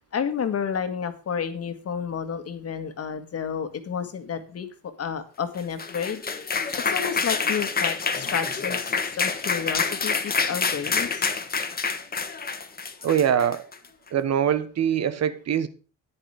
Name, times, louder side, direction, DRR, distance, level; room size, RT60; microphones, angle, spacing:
voice 1, 0.1-6.2 6.9-11.3, left 7 dB, 55° left, 1.8 m, -31 dB
sound 1, 5.6-13.9, left 5 dB, 30° left, 1.5 m, -27 dB
voice 2, 13.0-13.7 14.1-15.7, right 9 dB, 60° right, 1.3 m, -23 dB
10.0 x 9.8 x 4.8 m
cardioid pair, 90°, 30 cm